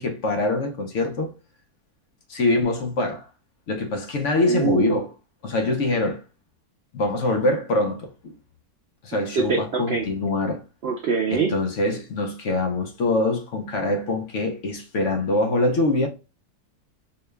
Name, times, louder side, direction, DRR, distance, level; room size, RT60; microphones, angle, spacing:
voice 1, 0.0-1.3 2.3-3.3 3.7-5.1 5.4-6.2 6.9-8.4 9.0-10.6 11.3-16.1, left 2 dB, 60° left, 1.0 m, -24 dB
voice 2, 4.5-5.1 9.4-10.1 10.8-11.5, right 5 dB, 65° right, 0.6 m, -24 dB
4.4 x 2.2 x 3.2 m
omnidirectional pair, 1.7 m